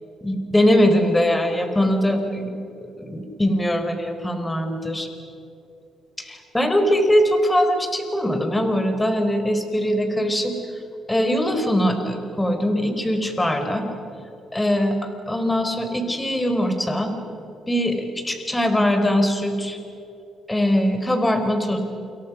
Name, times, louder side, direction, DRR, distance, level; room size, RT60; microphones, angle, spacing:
voice 1, 0.2-2.5 3.0-5.1 6.2-10.5 11.1-13.9 14.5-15.0 15.3-17.1 17.7-19.8 20.5-21.8, equal, 10° left, 6 dB, 4.5 m, -21 dB
29.0 x 28.0 x 6.3 m, 2.8 s
cardioid pair, 90°, 0 cm